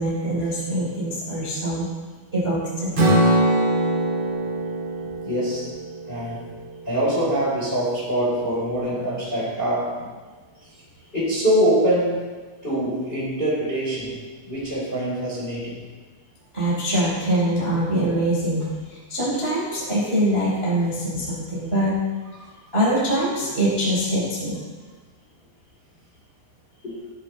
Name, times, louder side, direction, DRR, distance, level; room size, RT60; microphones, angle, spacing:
voice 1, 0.0-1.8 2.3-2.9 16.5-21.9 22.7-24.6, right 1 dB, 15° right, -7 dB, 2.9 m, -23 dB
Strum, 2.9-7.1, right 1 dB, 40° right, 1.7 m, -23 dB
voice 2, 5.2-5.7 6.1-6.4 6.8-10.0 11.1-12.3 12.6-14.2 14.4-15.8 22.4-22.5 26.8-27.0, right 1 dB, 10° left, -7 dB, 3.2 m, -24 dB
16.5 x 11.0 x 3.2 m, 1.4 s
omnidirectional pair, 5.8 m